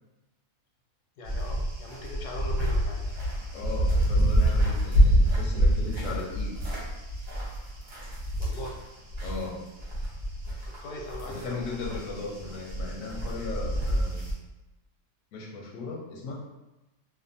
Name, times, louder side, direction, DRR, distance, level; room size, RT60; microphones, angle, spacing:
voice 1, 1.2-3.1 8.4-8.8 10.7-11.9, left 1 dB, 90° left, 0 dB, 1.2 m, -40 dB
sound 1, 1.2-9.4 9.8-14.3, equal, 50° right, 0.8 m, -27 dB
voice 2, 3.5-6.5 9.2-9.6 11.3-14.3 15.3-16.3, left 3 dB, 65° left, -2 dB, 0.9 m, -37 dB
2.5 x 2.5 x 2.6 m, 1.0 s
omnidirectional pair, 1.7 m